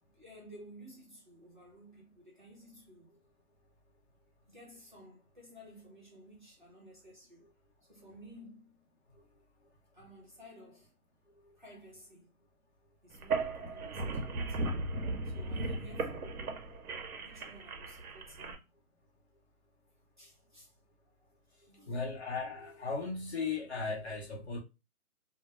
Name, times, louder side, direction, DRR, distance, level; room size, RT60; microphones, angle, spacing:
voice 1, 0.0-3.2 4.4-7.5 7.9-8.8 9.9-10.9 11.6-12.3 13.0-14.8 15.2-16.7 17.2-18.7 20.2-20.8 21.7-22.2, equal, 35° right, 0.6 m, -55 dB
sound 1, 13.1-18.5, right 3 dB, 75° right, 0.6 m, -36 dB
voice 2, 21.9-24.6, left 4 dB, 45° left, 0.7 m, -36 dB
2.1 x 2.0 x 2.9 m
hypercardioid pair, 175°, 44 cm